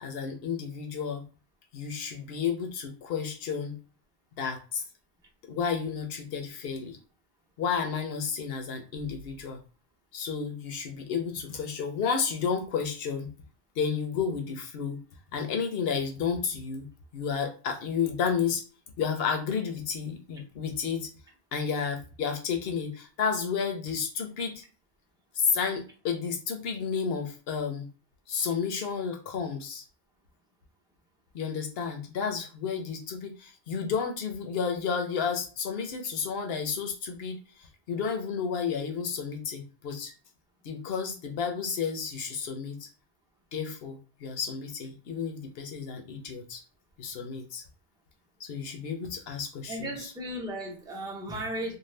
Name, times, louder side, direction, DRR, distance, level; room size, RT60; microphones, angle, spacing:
voice 1, 0.0-1.2 1.7-3.8 4.4-4.8 5.5-7.0 7.6-9.6 10.1-13.3 13.8-15.0 15.3-18.6 19.0-21.1 21.5-24.6 25.3-27.9 28.3-29.8 31.3-37.4 37.9-40.1 40.6-42.9 43.5-46.6 47.0-47.6 48.4-50.1, left 6 dB, 75° left, 4 dB, 0.9 m, -31 dB
voice 2, 49.7-51.8, right 1 dB, 5° right, -1 dB, 0.5 m, -35 dB
2.6 x 2.2 x 3.2 m, 0.35 s
omnidirectional pair, 1.0 m